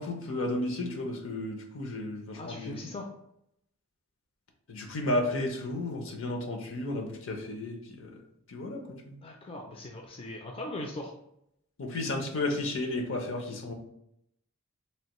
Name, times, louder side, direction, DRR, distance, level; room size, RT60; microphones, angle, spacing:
voice 1, 0.0-2.9 4.7-8.2 8.5-9.1 11.8-13.7, left 2 dB, 65° left, 3 dB, 0.6 m, -33 dB
voice 2, 2.3-3.1 9.2-11.1, left 1 dB, 25° left, 1 dB, 0.4 m, -39 dB
3.2 x 2.5 x 2.9 m, 0.77 s
head